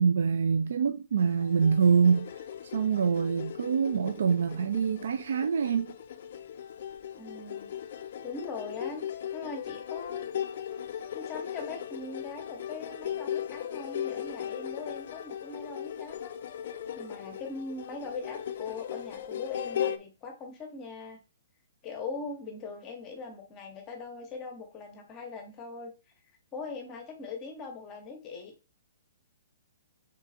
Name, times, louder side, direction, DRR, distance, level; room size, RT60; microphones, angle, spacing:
voice 1, 0.0-2.3 2.7-5.9, right 6 dB, 65° right, 0.3 m, -25 dB
sound 1, 1.2-20.0, left 9 dB, 45° left, 0.4 m, -38 dB
voice 2, 7.2-7.7 8.2-10.3 11.1-16.3 16.7-21.2 21.8-25.9 26.5-28.5, left 3 dB, 15° left, 0.8 m, -41 dB
3.7 x 3.5 x 4.1 m
hypercardioid pair, 180°, 0 cm